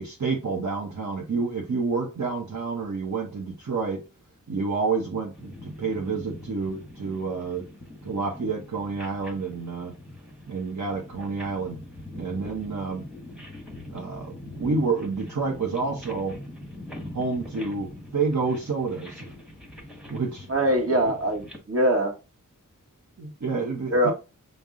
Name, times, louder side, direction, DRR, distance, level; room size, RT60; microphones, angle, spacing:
voice 1, 0.0-4.0 4.5-7.7 8.0-10.0 10.5-11.8 12.1-13.1 13.9-16.4 17.1-19.3 20.1-20.5 23.2-24.1, right 4 dB, 60° right, 0.8 m, -29 dB
sound 1, 5.3-21.6, left 1 dB, ahead, 1.1 m, -43 dB
voice 2, 20.5-22.1 23.9-24.1, right 1 dB, 45° right, 1.1 m, -22 dB
5.2 x 2.0 x 3.6 m
wide cardioid pair, 55°, 33 cm